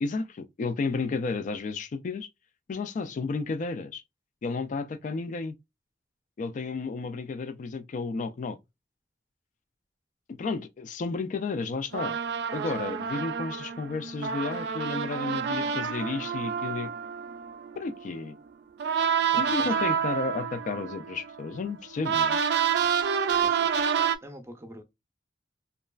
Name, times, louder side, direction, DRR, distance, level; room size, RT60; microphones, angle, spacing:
voice 1, 0.0-2.3 2.7-4.0 4.4-5.5 6.4-8.6 10.3-12.2 12.5-16.9 17.8-18.4 19.4-22.4, left 4 dB, 45° left, 0.3 m, -32 dB
sound 1, 11.9-18.3 18.8-24.2, right 7 dB, 65° right, 0.3 m, -28 dB
voice 2, 19.3-19.7 23.3-23.7 24.2-24.8, right 1 dB, 15° right, 0.5 m, -45 dB
2.9 x 2.3 x 2.3 m
head